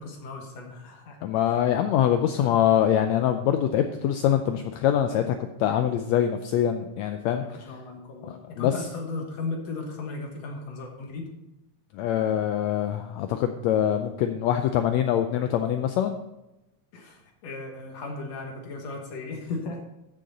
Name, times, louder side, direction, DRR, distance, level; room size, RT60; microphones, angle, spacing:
voice 1, 0.0-1.2 7.4-11.3 16.9-19.8, left 3 dB, 65° left, 2 dB, 2.3 m, -36 dB
voice 2, 1.2-7.4 8.5-8.7 11.9-16.2, left 10 dB, 80° left, 7 dB, 1.7 m, -24 dB
14.5 x 6.5 x 4.1 m, 0.94 s
omnidirectional pair, 3.5 m